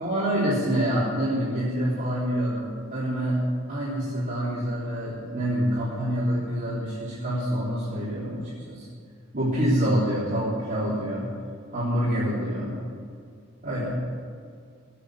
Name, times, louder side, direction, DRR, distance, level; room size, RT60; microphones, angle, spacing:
voice 1, 0.0-8.9 9.3-11.3 11.7-12.8 13.6-14.0, equal, 40° right, -9 dB, 3.6 m, -26 dB
16.5 x 8.4 x 8.5 m, 2.2 s
head